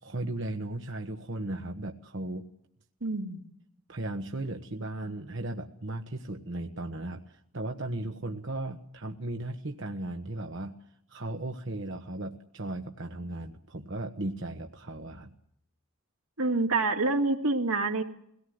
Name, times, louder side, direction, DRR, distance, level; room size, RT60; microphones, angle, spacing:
voice 1, 0.0-2.5 3.9-10.8 11.1-15.3, right 2 dB, 60° right, 4 dB, 1.3 m, -36 dB
voice 2, 3.0-3.5 16.4-18.0, right 3 dB, 85° right, 4 dB, 2.4 m, -27 dB
23.0 x 18.0 x 7.9 m, 0.72 s
head